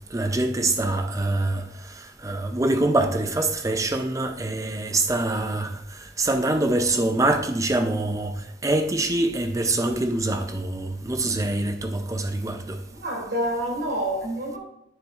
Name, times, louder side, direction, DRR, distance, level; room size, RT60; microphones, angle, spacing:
voice 1, 0.1-1.6 2.0-12.8, right 2 dB, 20° right, 0.5 m, -25 dB
voice 2, 12.9-14.6, right 1 dB, 65° right, 2.7 m, -28 dB
10.0 x 6.7 x 2.5 m
head